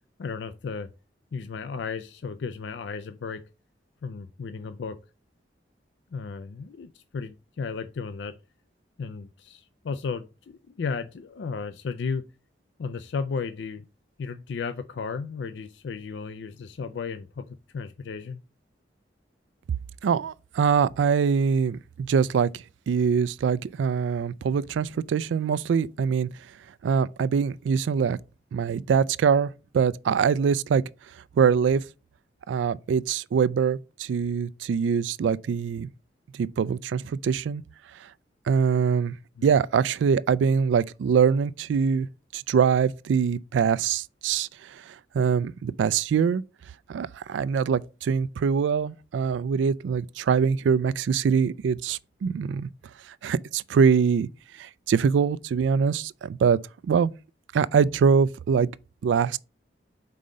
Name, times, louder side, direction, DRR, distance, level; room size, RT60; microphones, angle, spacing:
voice 1, 0.2-0.9 1.3-3.4 4.0-5.0 6.1-8.4 9.0-12.2 12.8-13.9 14.2-18.4 39.4-39.5, left 5 dB, 75° left, 0.4 m, -34 dB
voice 2, 20.0-26.3 26.8-28.2 28.5-30.8 31.4-31.8 32.5-35.9 36.3-37.6 38.5-39.1 39.4-42.1 42.3-46.4 46.9-52.7 53.2-54.3 54.6-57.1 57.5-58.7 59.0-59.4, right 6 dB, 90° right, 0.3 m, -23 dB
5.4 x 3.8 x 5.1 m
head